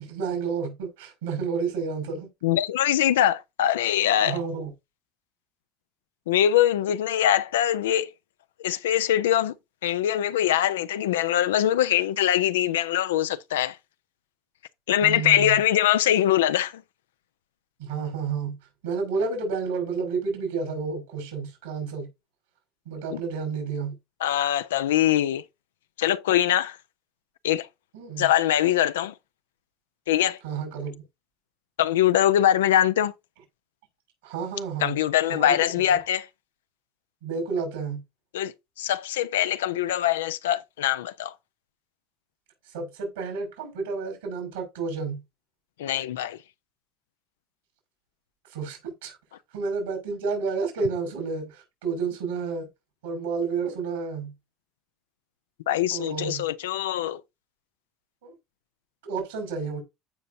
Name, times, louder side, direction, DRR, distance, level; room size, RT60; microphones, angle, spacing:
voice 1, 0.0-2.3 4.2-4.7 15.0-15.6 17.8-18.6 18.8-22.1 22.9-23.9 27.9-28.3 30.4-30.9 34.2-35.0 35.3-35.5 37.2-38.0 42.7-45.2 48.5-49.2 49.5-52.7 53.0-54.3 55.9-56.4 58.2-58.3 59.0-59.8, right 5 dB, 90° right, 5.8 m, -30 dB
voice 2, 2.4-4.4 6.3-8.1 8.6-9.5 9.8-13.8 14.9-16.8 23.1-23.2 24.2-25.4 26.0-26.8 27.4-27.7 28.2-29.1 30.1-30.4 31.8-33.1 34.8-36.3 38.3-41.3 45.8-46.4 55.7-57.2, left 11 dB, 90° left, 0.5 m, -23 dB
14.5 x 5.2 x 2.7 m
hypercardioid pair, 80°, 0 cm